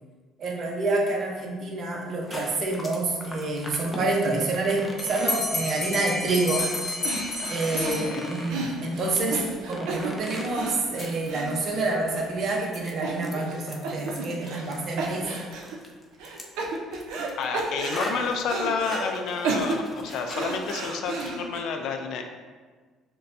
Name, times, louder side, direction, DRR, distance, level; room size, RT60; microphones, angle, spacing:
voice 1, 0.4-6.7 7.5-15.3, right 2 dB, 40° right, -1 dB, 0.7 m, -27 dB
sound 1, 2.1-20.8 21.1-21.3, equal, 10° left, 0.5 m, -40 dB
Bell, 5.0-8.6, left 2 dB, 30° left, 1.1 m, -31 dB
sound 2, 6.6-6.8 7.0-12.2 12.5-12.7 13.0-13.6 13.8-14.7 15.0-15.8 16.2-17.3 17.5-19.1 19.4-21.6, right 3 dB, 85° right, 0.6 m, -33 dB
voice 2, 17.4-22.2, left 5 dB, 65° left, 4 dB, 0.4 m, -30 dB
6.5 x 2.2 x 2.6 m, 1.4 s
cardioid pair, 150°, 0 cm